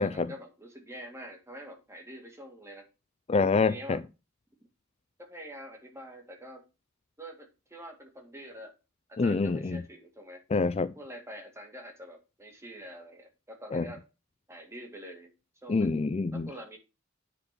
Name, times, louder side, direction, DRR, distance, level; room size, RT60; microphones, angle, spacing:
voice 1, 0.0-2.8 3.7-4.0 5.2-6.6 7.2-8.7 9.1-10.4 10.9-14.0 14.5-15.3 15.6-16.0 16.3-16.8, equal, 15° right, 2.2 m, -46 dB
voice 2, 3.3-4.0 9.2-9.8 10.5-10.9 13.7-13.9 15.7-16.5, left 4 dB, 30° left, 0.4 m, -26 dB
9.6 x 5.1 x 6.0 m
head